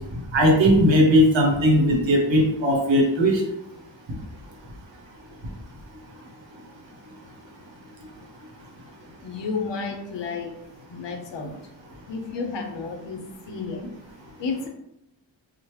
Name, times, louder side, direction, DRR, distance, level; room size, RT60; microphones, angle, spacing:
voice 1, 0.3-3.4, equal, 75° right, 0 dB, 0.8 m, -18 dB
voice 2, 9.2-10.5 10.9-11.7 12.1-13.9 14.3-14.7, left 4 dB, 70° left, 4 dB, 0.6 m, -32 dB
3.0 x 2.1 x 3.0 m, 0.83 s
wide cardioid pair, 140°, 45 cm